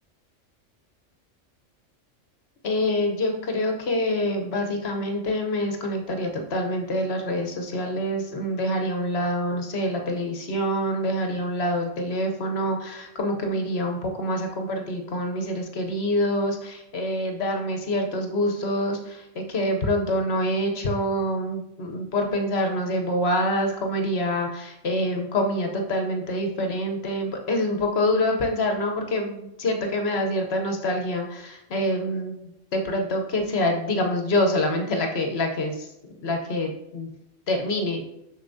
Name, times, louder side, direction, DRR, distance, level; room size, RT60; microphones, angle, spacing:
voice 1, 2.6-32.4 32.7-35.9 36.2-37.1 37.5-38.1, left 1 dB, 60° left, 3 dB, 1.0 m, -26 dB
7.0 x 6.2 x 2.6 m, 0.89 s
omnidirectional pair, 1.3 m